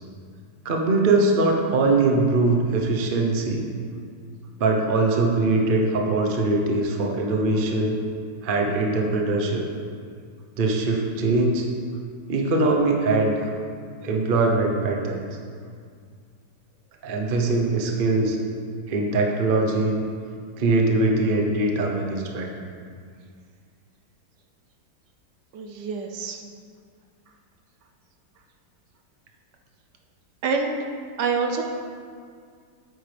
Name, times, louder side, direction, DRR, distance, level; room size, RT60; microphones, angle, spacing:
voice 1, 0.6-3.6 4.6-8.0 8.4-9.6 10.6-11.7 12.3-13.4 14.0-15.2 17.0-18.4 18.9-20.0 20.6-22.5, right 2 dB, 40° right, 1 dB, 0.8 m, -22 dB
voice 2, 25.5-26.4 30.4-30.9 31.2-31.6, right 4 dB, 70° right, 3 dB, 1.2 m, -26 dB
9.2 x 8.6 x 3.4 m, 2.1 s
omnidirectional pair, 2.0 m